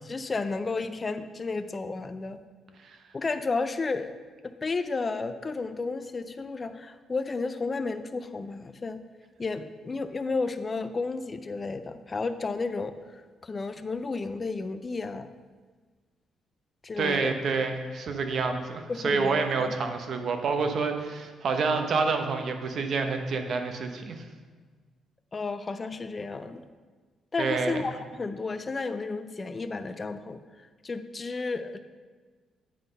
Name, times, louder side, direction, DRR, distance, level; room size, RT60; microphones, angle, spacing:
voice 1, 0.0-2.4 3.1-4.2 4.4-9.0 9.4-15.3 16.8-17.3 18.9-19.7 25.3-26.6 27.3-31.8, left 3 dB, 30° left, 11 dB, 0.4 m, -32 dB
voice 2, 17.0-24.2 27.4-27.8, right 4 dB, 60° right, 6 dB, 0.9 m, -28 dB
9.8 x 3.9 x 5.3 m, 1.4 s
cardioid pair, 90°, 0 cm